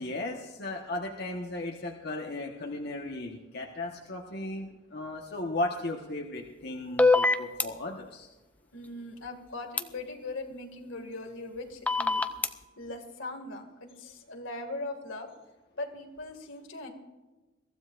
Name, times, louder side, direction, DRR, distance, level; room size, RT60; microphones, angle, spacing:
voice 1, 0.0-8.3, left 2 dB, 55° left, 0 dB, 1.3 m, -36 dB
sound 1, 7.0-7.6 9.8-9.9 11.9-12.5, left 3 dB, 10° left, 0.5 m, -22 dB
voice 2, 8.7-12.3 12.8-15.3 15.7-16.9, left 2 dB, 80° left, 4 dB, 2.2 m, -40 dB
22.5 x 15.0 x 2.6 m, 1.1 s
head